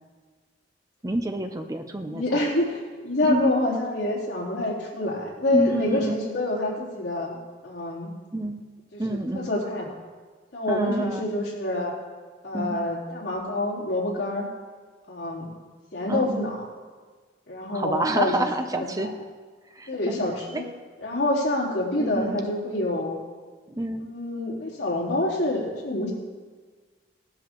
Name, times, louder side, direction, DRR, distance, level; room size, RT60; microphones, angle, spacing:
voice 1, 1.0-2.4 3.2-3.5 5.5-6.2 8.3-8.6 9.0-9.5 10.7-11.3 12.5-12.8 16.1-16.5 17.7-19.2 19.8-20.2 20.5-20.6 22.0-22.4 23.7-24.1, right 1 dB, 20° right, 6 dB, 0.6 m, -28 dB
voice 2, 2.0-7.4 7.6-8.1 8.9-9.9 10.5-11.9 12.4-14.5 15.1-15.5 15.9-16.6 17.5-18.3 18.7-19.1 19.9-20.6 21.0-23.2 24.0-26.1, left 2 dB, 65° left, -6 dB, 3.6 m, -27 dB
18.0 x 12.5 x 3.0 m, 1.5 s
head